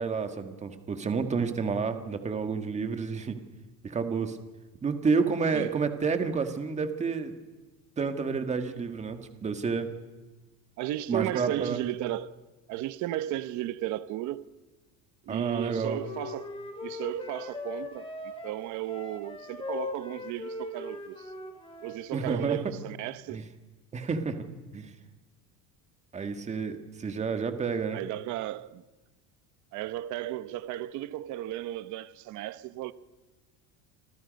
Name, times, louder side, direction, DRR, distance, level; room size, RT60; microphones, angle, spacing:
voice 1, 0.0-3.3 3.8-4.4 4.8-7.3 8.0-9.9 11.1-11.8 15.3-16.0 22.1-22.6 23.3-23.4 23.9-24.4 24.7-24.9 26.1-28.0, right 5 dB, 20° right, 1.7 m, -30 dB
voice 2, 10.8-12.3 12.7-14.5 15.2-21.3 21.8-23.4 27.9-28.8 29.7-32.9, right 14 dB, 50° right, 1.0 m, -35 dB
Wind instrument woodwind instrument, 15.6-22.0, left 3 dB, 15° left, 3.9 m, -40 dB
28.5 x 25.5 x 5.3 m
cardioid pair, 170°, 37 cm